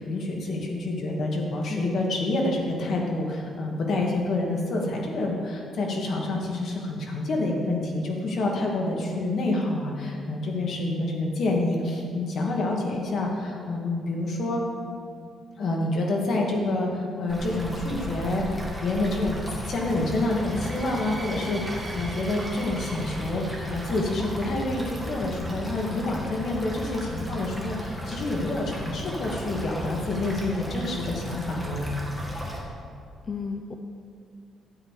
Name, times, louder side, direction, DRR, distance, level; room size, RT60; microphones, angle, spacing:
voice 1, 0.0-14.6 15.6-19.4 19.7-31.9, left 2 dB, 55° left, -1 dB, 2.1 m, -28 dB
voice 2, 1.7-2.1 33.3-33.7, left 5 dB, 30° left, 4 dB, 0.6 m, -33 dB
sound 1, 17.3-32.6, equal, 5° left, 2.0 m, -35 dB
sound 2, 19.9-25.2, right 2 dB, 15° right, 1.6 m, -44 dB
12.5 x 8.9 x 4.9 m, 2.3 s
cardioid pair, 130°, 0 cm